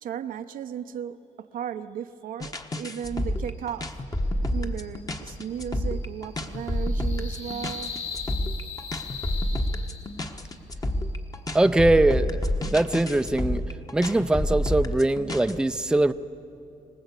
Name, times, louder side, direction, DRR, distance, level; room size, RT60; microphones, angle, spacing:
voice 1, 0.0-4.0 4.5-7.9, right 9 dB, 80° right, 9 dB, 0.8 m, -35 dB
sound 1, 2.4-15.5, left 1 dB, 25° left, 1.3 m, -29 dB
sound 2, 4.5-10.5, left 5 dB, 45° left, 2.7 m, -40 dB
voice 2, 11.5-12.4 12.7-13.6 13.9-16.1, right 2 dB, 5° right, 10 dB, 0.5 m, -22 dB
25.5 x 18.5 x 8.2 m, 2.8 s
cardioid pair, 90°, 14 cm